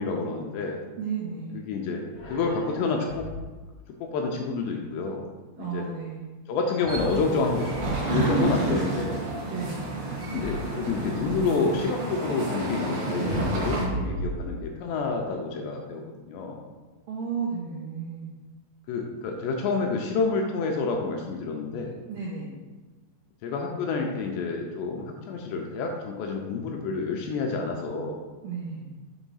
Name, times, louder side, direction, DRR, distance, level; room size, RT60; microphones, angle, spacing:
voice 1, 0.0-0.8 1.5-3.3 4.0-5.3 5.6-5.8 6.5-7.8 8.1-9.2 10.2-13.8 14.1-16.6 18.9-22.0 23.4-28.2, left 4 dB, 80° left, 1 dB, 2.5 m, -28 dB
voice 2, 1.0-1.6 5.6-6.3 8.1-8.6 9.5-9.8 13.1-14.1 17.1-18.3 22.1-22.5 28.4-28.9, right 4 dB, 90° right, -5 dB, 1.9 m, -32 dB
sound 1, 2.1-3.6 6.8-8.4 10.3-11.5 13.2-14.9, left 1 dB, 65° left, 1.3 m, -35 dB
sound 2, 6.9-13.9, right 3 dB, 65° right, 1.6 m, -31 dB
7.1 x 3.0 x 5.5 m, 1.3 s
omnidirectional pair, 5.3 m